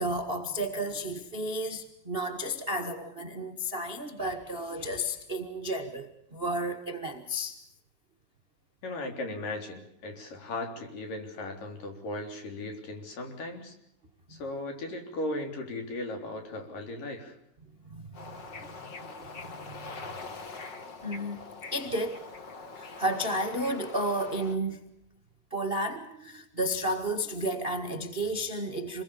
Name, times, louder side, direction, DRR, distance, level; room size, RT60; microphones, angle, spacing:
voice 1, 0.0-7.6 17.9-19.8 21.0-21.4 21.7-22.2 22.7-24.8 25.5-29.0, right 1 dB, 40° right, 6 dB, 0.8 m, -32 dB
voice 2, 8.8-13.7 14.3-17.4, left 2 dB, 60° left, 4 dB, 5.1 m, -37 dB
Bird / Ocean, 18.1-24.6, left 4 dB, 40° left, 1.7 m, -43 dB
27.5 x 21.0 x 7.0 m, 0.78 s
omnidirectional pair, 4.5 m